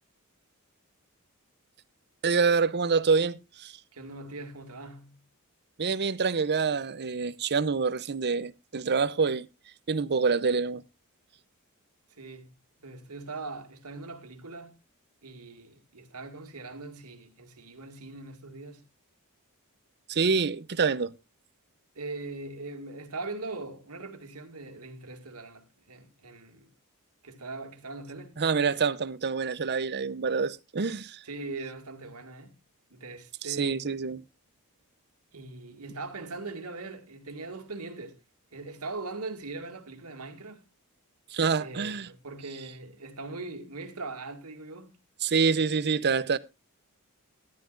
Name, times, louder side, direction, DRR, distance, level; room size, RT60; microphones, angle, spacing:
voice 1, 2.2-3.7 5.8-9.5 9.9-10.8 20.1-21.1 28.4-31.2 33.5-34.2 41.3-42.1 45.2-46.4, right 5 dB, 50° right, 0.7 m, -26 dB
voice 2, 3.9-5.3 12.1-14.8 15.2-18.9 21.9-26.7 27.2-28.4 31.2-32.5 32.9-34.0 35.3-38.2 38.5-40.6 41.6-45.0, right 3 dB, 85° right, 2.3 m, -41 dB
14.0 x 11.5 x 2.5 m
head